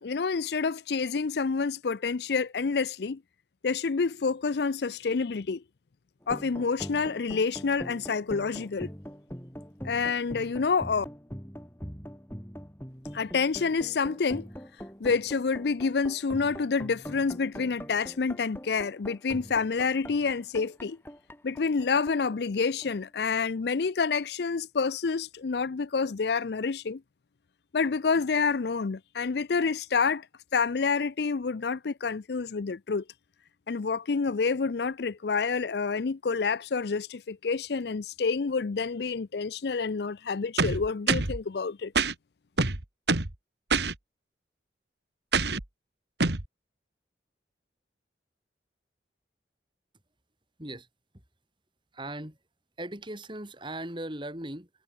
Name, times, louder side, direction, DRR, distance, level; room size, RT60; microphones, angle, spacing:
voice 1, 0.0-3.2 3.6-5.6 6.3-8.9 9.8-11.1 13.1-14.5 15.0-21.0 21.4-27.0 27.7-30.3 30.5-33.0 33.7-41.9, left 5 dB, 60° left, 0.5 m, -28 dB
sound 1, 6.2-23.1, equal, 10° left, 4.3 m, -43 dB
sound 2, 40.6-41.4 41.9-42.1 42.6-43.3 43.7-43.9 45.3-45.6 46.2-46.4, right 4 dB, 65° right, 2.1 m, -25 dB
voice 2, 51.9-52.4 52.8-54.8, right 1 dB, 25° right, 4.4 m, -38 dB
head